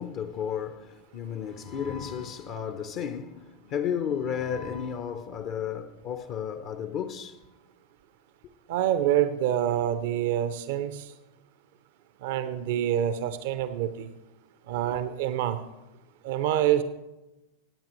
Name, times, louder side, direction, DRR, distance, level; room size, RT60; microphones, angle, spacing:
voice 1, 0.0-7.4, left 8 dB, 45° left, 0.8 m, -33 dB
voice 2, 8.7-11.0 12.2-14.1 14.7-15.6 16.2-16.8, right 11 dB, 55° right, 0.7 m, -26 dB
25.0 x 8.8 x 3.1 m
figure-of-eight pair, 90°, 0 cm